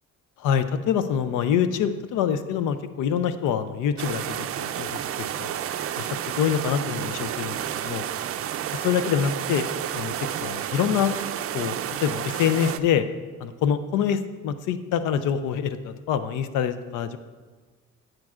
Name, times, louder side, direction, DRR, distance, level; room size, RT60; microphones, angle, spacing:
voice 1, 0.4-5.5 6.0-6.1 6.4-8.0 8.7-9.7 9.9-11.1 11.5-13.1 13.4-17.2, left 8 dB, 90° left, 12 dB, 0.5 m, -25 dB
sound 1, 4.0-12.8, right 10 dB, 50° right, 0.4 m, -31 dB
10.5 x 7.8 x 2.4 m, 1.4 s
cardioid pair, 90°, 30 cm